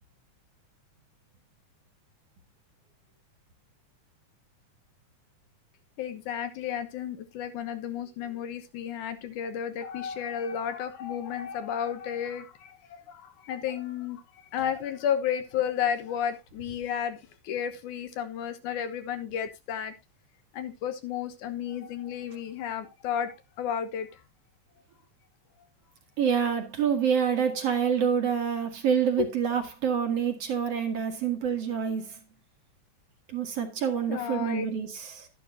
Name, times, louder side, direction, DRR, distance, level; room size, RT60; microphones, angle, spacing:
voice 1, 6.0-14.2 14.5-19.9 20.5-24.1 29.2-29.3 34.1-34.7, left 9 dB, 80° left, 2.7 m, -32 dB
voice 2, 26.2-32.2 33.3-35.3, right 7 dB, 55° right, 2.7 m, -27 dB
11.5 x 11.5 x 2.7 m
omnidirectional pair, 3.5 m